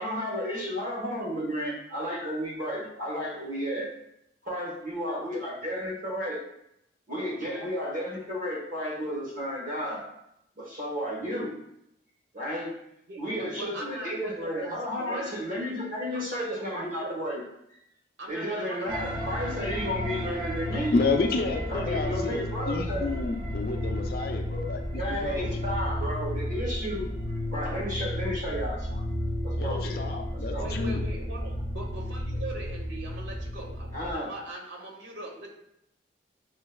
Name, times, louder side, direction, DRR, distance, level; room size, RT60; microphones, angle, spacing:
voice 1, 0.0-3.9 4.4-6.4 7.1-10.0 10.5-11.6 12.3-12.8 13.2-17.4 17.7-17.8 18.3-21.0 21.7-23.1 24.9-27.1 27.5-29.0 29.4-30.0 30.3-30.8 33.9-34.3, equal, 45° right, -5 dB, 1.1 m, -32 dB
voice 2, 13.1-15.4 16.1-17.2 18.2-18.9 30.6-35.5, right 2 dB, 75° right, 0 dB, 0.7 m, -41 dB
sound 1, 18.9-34.1, equal, 25° right, 0.5 m, -32 dB
voice 3, 20.7-25.5 29.6-31.0, left 3 dB, 50° left, 4 dB, 0.4 m, -30 dB
6.3 x 2.2 x 2.2 m, 0.79 s
head